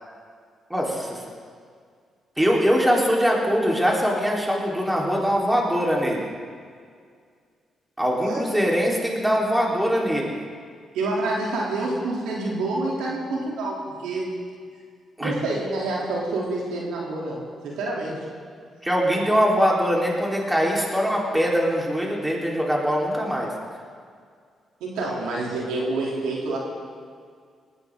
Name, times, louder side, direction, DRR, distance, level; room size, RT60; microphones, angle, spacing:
voice 1, 0.7-1.2 2.4-6.2 8.0-10.4 15.2-15.3 18.8-23.5, equal, 10° right, -3 dB, 4.5 m, -22 dB
voice 2, 8.1-8.5 10.9-14.3 15.2-18.2 24.8-26.6, right 2 dB, 85° right, -3 dB, 3.6 m, -28 dB
19.0 x 16.5 x 4.0 m, 2.1 s
supercardioid pair, 55°, 0 cm